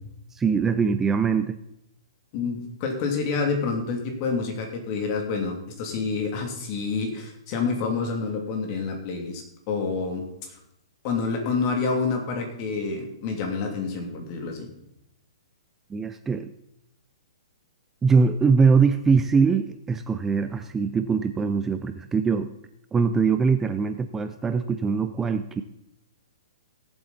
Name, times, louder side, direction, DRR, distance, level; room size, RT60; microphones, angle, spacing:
voice 1, 0.3-1.6 15.9-16.5 18.0-22.5 22.9-25.6, right 5 dB, 10° right, 10 dB, 0.5 m, -22 dB
voice 2, 2.3-10.6 11.0-14.7, left 4 dB, 40° left, 4 dB, 2.8 m, -28 dB
17.5 x 8.0 x 4.2 m, 0.82 s
hypercardioid pair, 135°, 3 cm